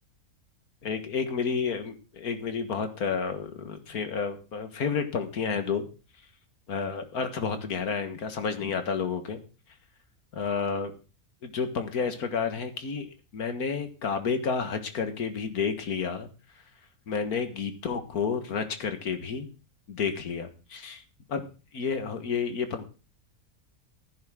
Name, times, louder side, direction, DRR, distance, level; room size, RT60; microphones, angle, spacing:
voice 1, 0.8-5.9 6.7-9.4 10.3-10.9 11.4-16.3 17.1-19.5 19.9-21.0 21.3-21.4 21.7-22.9, left 5 dB, 90° left, 8 dB, 2.0 m, -30 dB
15.0 x 10.5 x 3.7 m, 0.33 s
omnidirectional pair, 1.5 m